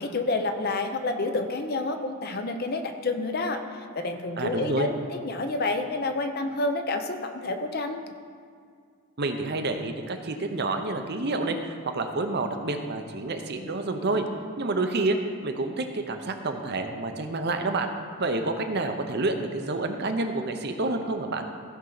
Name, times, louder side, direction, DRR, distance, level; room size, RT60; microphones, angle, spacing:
voice 1, 0.0-8.0, left 2 dB, 45° left, 6 dB, 0.7 m, -29 dB
voice 2, 4.4-4.9 9.2-14.2 14.6-15.2 15.4-17.9 18.2-21.4, right 2 dB, 50° right, 6 dB, 0.7 m, -28 dB
15.5 x 5.6 x 4.0 m, 2.1 s
head